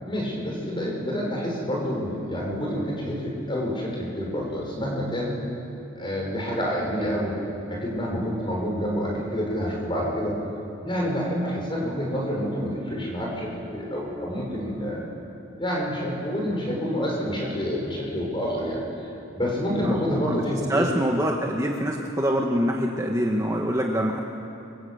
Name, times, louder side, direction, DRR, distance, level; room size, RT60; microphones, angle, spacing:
voice 1, 0.0-5.3 5.9-7.3 7.7-10.4 10.8-15.0 15.6-18.8 19.3-20.9, equal, 25° left, -2 dB, 6.8 m, -28 dB
voice 2, 20.7-24.2, equal, 15° right, 0 dB, 1.5 m, -25 dB
27.0 x 24.5 x 8.2 m, 2.8 s
head